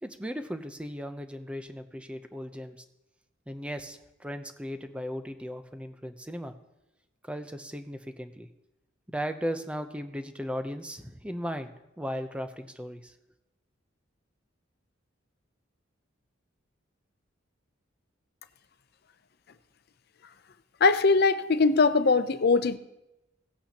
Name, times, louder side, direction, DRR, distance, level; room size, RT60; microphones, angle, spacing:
voice 1, 0.0-2.8 3.5-6.5 7.2-8.5 9.1-13.1, equal, 5° right, 8 dB, 0.6 m, -37 dB
voice 2, 20.8-22.8, left 4 dB, 55° left, 12 dB, 0.6 m, -21 dB
17.5 x 8.6 x 2.9 m, 0.92 s
head